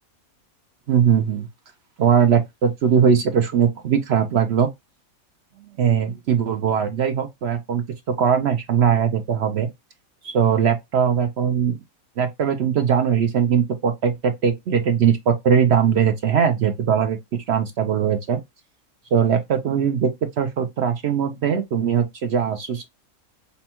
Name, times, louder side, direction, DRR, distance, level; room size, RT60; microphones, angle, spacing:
voice 1, 0.9-1.5 2.0-4.7 5.8-9.7 10.2-11.8 12.2-18.4 19.1-20.1 20.4-22.9, right 7 dB, 65° right, 0.6 m, -20 dB
5.4 x 2.2 x 2.8 m
omnidirectional pair, 1.5 m